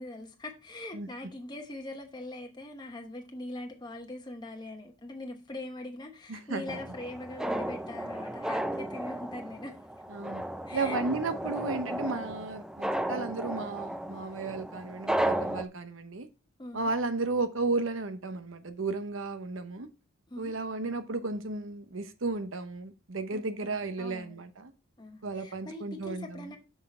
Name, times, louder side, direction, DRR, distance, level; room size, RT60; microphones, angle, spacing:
voice 1, 0.0-9.8 10.7-11.1 16.6-16.9 20.3-20.5 23.3-24.4 25.0-26.6, left 2 dB, 20° left, 0.9 m, -42 dB
voice 2, 6.3-6.8 10.1-10.4 10.7-16.3 16.7-19.9 20.4-24.7 25.2-26.5, right 3 dB, 80° right, 0.9 m, -34 dB
sound 1, 6.7-15.7, right 1 dB, 5° right, 0.4 m, -34 dB
6.5 x 5.6 x 4.3 m
head